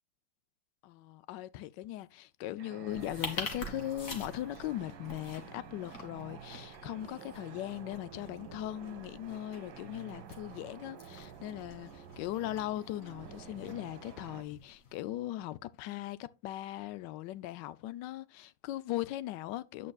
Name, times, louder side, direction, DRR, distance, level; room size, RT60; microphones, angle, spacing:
voice 1, 0.8-19.9, left 14 dB, 75° left, 1.2 m, -39 dB
sound 1, 2.6-14.4, right 6 dB, 75° right, 1.6 m, -50 dB
sound 2, 2.9-15.0, left 3 dB, 45° left, 2.1 m, -47 dB
9.5 x 8.5 x 2.3 m
omnidirectional pair, 2.0 m